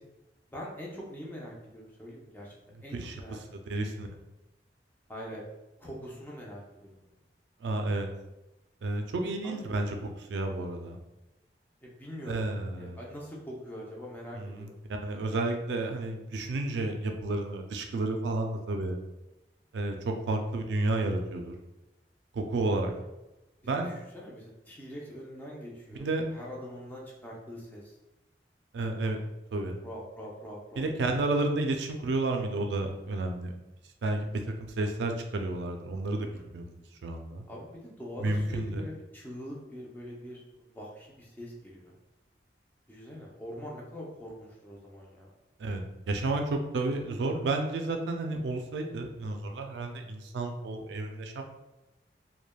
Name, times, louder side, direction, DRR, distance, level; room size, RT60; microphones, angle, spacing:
voice 1, 0.5-2.5 2.8-3.4 3.7-3.8 5.1-5.4 5.8-7.1 9.4-9.7 11.8-12.4 12.8-14.8 23.6-27.9 29.8-30.8 34.8-35.0 36.3-36.5 37.5-41.9 42.9-45.3, equal, 10° left, -4 dB, 0.5 m, -43 dB
voice 2, 3.5-4.1 7.6-8.1 8.8-11.0 12.3-13.0 14.4-19.0 19.7-21.5 22.3-22.9 23.6-23.9 26.0-26.2 28.7-29.2 29.5-29.8 30.8-33.5 34.0-37.5 38.2-38.8 45.6-51.4, right 2 dB, 80° right, 4 dB, 0.3 m, -31 dB
3.1 x 2.1 x 2.2 m, 0.98 s
head